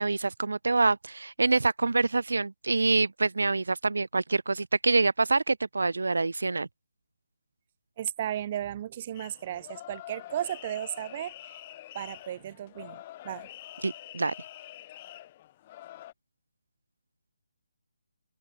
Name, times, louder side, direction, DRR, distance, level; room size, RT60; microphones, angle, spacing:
voice 1, 0.0-6.7 13.8-14.3, right 3 dB, 85° right, 1.0 m, -26 dB
voice 2, 8.0-11.6 11.9-13.5, right 11 dB, 30° right, 2.3 m, -35 dB
sound 1, 9.1-16.1, left 14 dB, 25° left, 4.7 m, -46 dB
hypercardioid pair, 165°, 0 cm